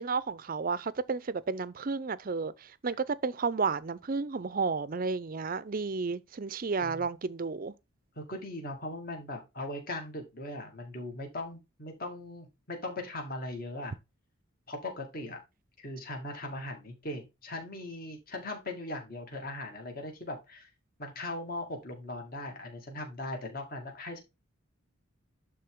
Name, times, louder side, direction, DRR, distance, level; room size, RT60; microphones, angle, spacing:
voice 1, 0.0-7.7, right 4 dB, 45° right, 0.5 m, -32 dB
voice 2, 8.2-13.9 14.7-15.4 15.8-20.7 21.0-24.2, left 1 dB, 45° left, 2.4 m, -39 dB
11.0 x 3.8 x 3.7 m
head